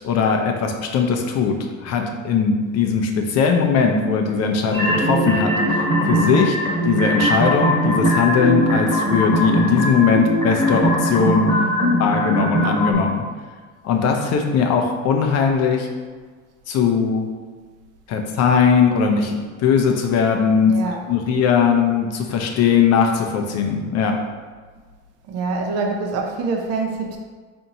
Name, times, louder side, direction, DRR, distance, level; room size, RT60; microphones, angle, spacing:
voice 1, 0.0-1.6 1.8-6.6 6.8-11.5 12.0-13.2 13.8-15.9 16.7-17.3 18.1-20.8 21.1-24.2, left 6 dB, 45° left, 3 dB, 0.5 m, -19 dB
sound 1, 4.7-12.9, equal, 10° left, 1.1 m, -20 dB
voice 2, 11.6-12.0 20.7-21.0 25.3-27.2, right 4 dB, 45° right, 2 dB, 0.6 m, -25 dB
4.3 x 2.6 x 2.8 m, 1.5 s
supercardioid pair, 110°, 35 cm